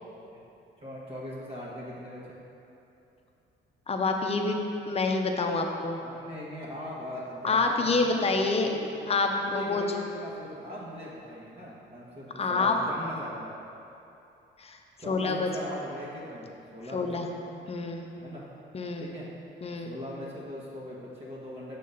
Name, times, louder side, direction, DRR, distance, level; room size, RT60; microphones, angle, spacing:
voice 1, 0.8-2.4 6.0-8.8 9.5-13.6 15.0-17.4 18.2-18.4 19.0-19.3 19.8-21.8, left 1 dB, 30° right, -6 dB, 1.3 m, -40 dB
voice 2, 3.9-6.0 7.4-8.7 9.1-9.8 12.4-12.7 14.6-14.8 15.1-15.5 16.9-17.3 17.7-18.1 18.7-19.1 19.6-20.0, left 3 dB, 30° left, 3 dB, 0.7 m, -27 dB
6.1 x 3.8 x 5.5 m, 2.8 s
cardioid pair, 90°, 20 cm